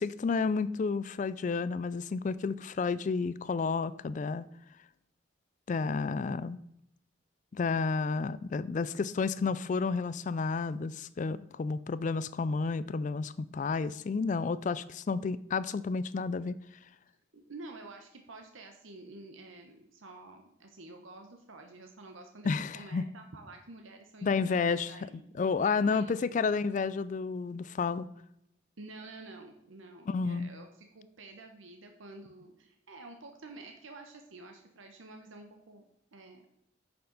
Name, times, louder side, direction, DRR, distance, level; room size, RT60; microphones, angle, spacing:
voice 1, 0.0-4.5 5.7-6.6 7.5-16.6 22.4-23.0 24.2-24.9 25.4-28.1 30.1-30.5, left 4 dB, 40° left, 15 dB, 0.3 m, -31 dB
voice 2, 17.3-25.3 25.6-26.2 28.8-35.8 36.1-36.5, right 2 dB, 80° right, 4 dB, 1.0 m, -49 dB
9.5 x 6.6 x 4.0 m, 0.79 s
head